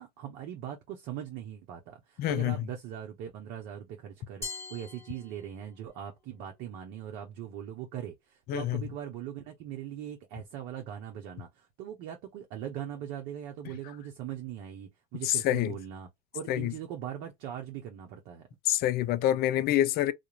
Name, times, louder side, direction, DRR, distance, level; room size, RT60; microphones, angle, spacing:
voice 1, 0.0-18.4, right 10 dB, 65° right, 0.7 m, -40 dB
voice 2, 2.2-2.6 8.5-8.8 15.2-15.7 16.5-16.7 18.7-20.1, left 13 dB, 50° left, 0.4 m, -26 dB
Glass, 4.4-5.9, left 4 dB, 15° left, 1.2 m, -42 dB
2.4 x 2.1 x 3.0 m
supercardioid pair, 90°, 20 cm